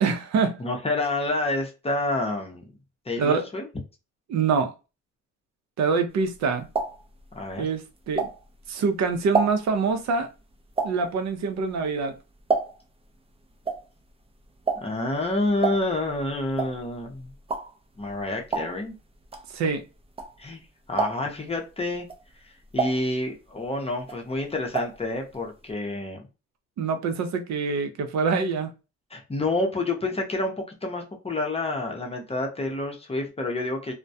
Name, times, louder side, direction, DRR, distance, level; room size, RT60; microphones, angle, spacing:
voice 1, 0.0-0.6 3.2-3.4 4.3-4.7 5.8-6.7 7.6-8.3 8.7-10.3 10.8-12.1 19.5-19.8 26.8-28.7, right 5 dB, 65° right, 0.6 m, -25 dB
voice 2, 0.6-2.7 3.1-3.7 7.3-7.7 14.8-17.3 18.0-18.9 20.4-20.6 20.9-22.1 22.4-26.2 29.1-33.9, left 2 dB, 20° left, 0.7 m, -28 dB
sound 1, 6.2-8.7 9.1-13.0 13.3-20.6 20.9-21.5 22.0-23.7 24.0-25.1 25.3-25.4 25.7-25.8, right 4 dB, 20° right, 0.5 m, -30 dB
2.2 x 2.1 x 2.6 m
cardioid pair, 90°, 30 cm